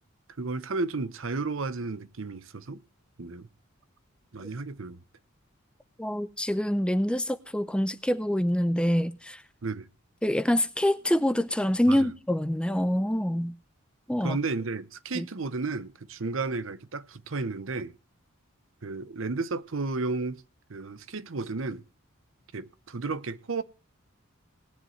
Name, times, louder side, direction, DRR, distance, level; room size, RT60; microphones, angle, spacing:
voice 1, 0.4-2.8 3.2-3.5 4.3-5.0 9.6-9.9 11.9-12.1 14.2-17.9 18.8-20.4 20.7-21.8 22.5-23.6, right 3 dB, 70° right, 0.8 m, -33 dB
voice 2, 6.0-9.4 10.2-13.5 14.1-14.4 15.1-15.3, equal, 5° left, 0.5 m, -26 dB
19.0 x 10.5 x 3.2 m
head